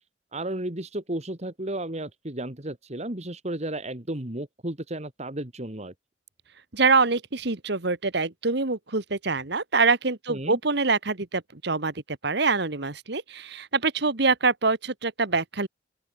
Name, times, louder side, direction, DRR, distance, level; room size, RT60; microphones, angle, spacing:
voice 1, 0.3-5.9 10.3-10.6, right 1 dB, 35° right, 2.3 m, -33 dB
voice 2, 6.7-15.7, right 4 dB, 60° right, 1.6 m, -25 dB
open air
head